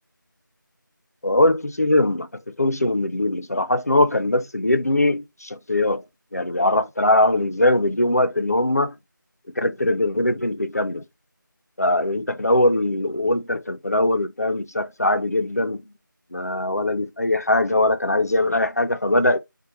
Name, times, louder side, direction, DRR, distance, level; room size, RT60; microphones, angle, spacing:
voice 1, 1.2-6.0 6.3-8.9 9.6-11.0 11.8-15.8 16.3-19.4, left 1 dB, 50° left, 0.4 m, -21 dB
4.3 x 2.2 x 3.9 m
figure-of-eight pair, 175°, 11 cm